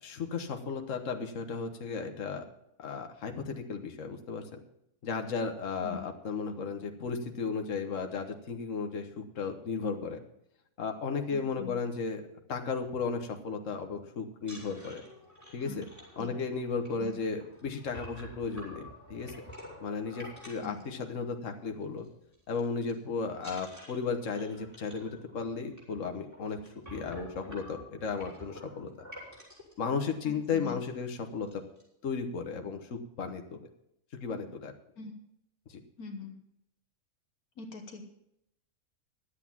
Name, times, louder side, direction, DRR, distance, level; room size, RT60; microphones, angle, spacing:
voice 1, 0.0-2.4 2.8-4.6 5.0-10.2 10.8-12.2 12.5-15.0 15.5-15.8 16.2-19.3 19.8-22.0 22.5-26.6 26.9-28.9 29.8-31.6 32.0-33.4 34.2-34.7 35.7-35.8, left 5 dB, 60° left, 5 dB, 1.6 m, -35 dB
voice 2, 11.3-11.7 15.7-15.8 16.2-16.3 17.0-17.1 20.6-20.8 30.2-30.8 35.0-35.1 36.0-36.4 37.6-38.0, left 4 dB, 80° left, 4 dB, 1.7 m, -42 dB
sound 1, 14.4-21.5 21.8-22.1 22.3-22.9 23.4-29.7 30.4-30.5 30.8-31.0 31.2-31.8, equal, 10° right, 5.9 m, -50 dB
11.5 x 8.4 x 7.3 m, 0.78 s
omnidirectional pair, 1.6 m